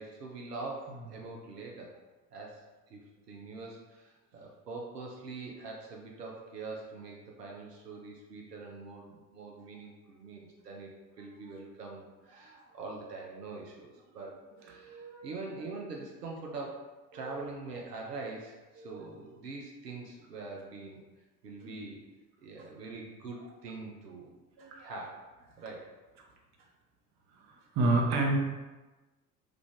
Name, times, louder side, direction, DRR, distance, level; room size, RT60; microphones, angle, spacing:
voice 1, 0.0-2.0 2.3-10.9 11.2-21.0 21.4-22.0 22.4-24.3 24.8-25.3 25.6-25.9, right 3 dB, 85° right, -1 dB, 0.6 m, -44 dB
voice 2, 14.7-15.3 17.4-17.5 18.8-19.1 21.6-21.7 24.6-24.9 27.7-28.4, right 2 dB, 35° right, 0 dB, 0.7 m, -30 dB
3.3 x 2.4 x 3.5 m, 1.2 s
figure-of-eight pair, 65°, 47 cm